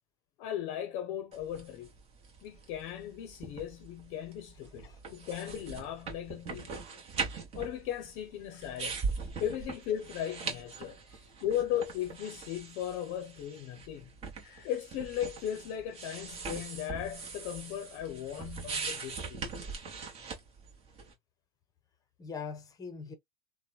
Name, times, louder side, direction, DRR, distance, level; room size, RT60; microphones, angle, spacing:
voice 1, 0.4-1.9 2.4-6.8 7.5-11.0 11.4-14.1 14.4-19.7, left 10 dB, 55° left, 0.6 m, -37 dB
sound 1, 1.3-21.1, right 5 dB, 35° right, 1.0 m, -41 dB
voice 2, 22.2-23.1, left 5 dB, 20° left, 0.7 m, -42 dB
3.0 x 2.1 x 2.3 m
supercardioid pair, 120°, 18 cm